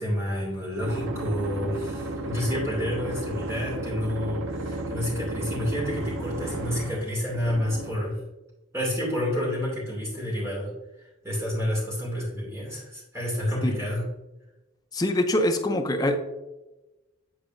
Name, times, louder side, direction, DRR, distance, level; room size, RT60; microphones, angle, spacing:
voice 1, 0.0-8.2 8.7-10.7 11.2-14.0, equal, 15° right, -4 dB, 2.3 m, -29 dB
sound 1, 0.8-8.1, right 1 dB, 85° right, 0.6 m, -33 dB
voice 2, 14.9-16.2, left 1 dB, 20° left, 4 dB, 0.5 m, -24 dB
8.7 x 4.6 x 2.6 m, 1.0 s
head